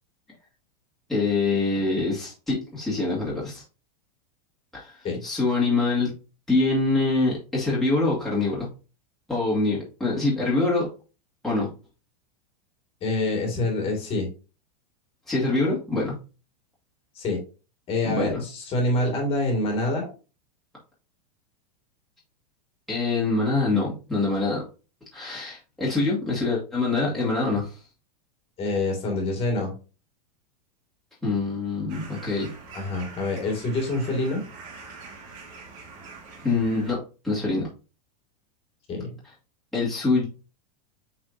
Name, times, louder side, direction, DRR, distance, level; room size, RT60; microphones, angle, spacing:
voice 1, 1.1-3.6 4.7-5.0 5.2-6.1 6.5-8.7 9.3-10.9 11.4-11.7 15.3-16.1 18.0-18.4 22.9-24.6 25.1-27.7 31.2-32.5 36.4-37.7 39.7-40.3, left 3 dB, ahead, -8 dB, 2.2 m, -25 dB
voice 2, 13.0-14.3 17.2-17.4 17.9-20.1 28.6-29.7 32.7-34.4 38.9-39.1, left 2 dB, 25° left, 1 dB, 2.2 m, -26 dB
sound 1, 31.9-37.0, right 4 dB, 40° right, 1.9 m, -44 dB
8.3 x 4.3 x 2.7 m, 0.34 s
supercardioid pair, 150°, 21 cm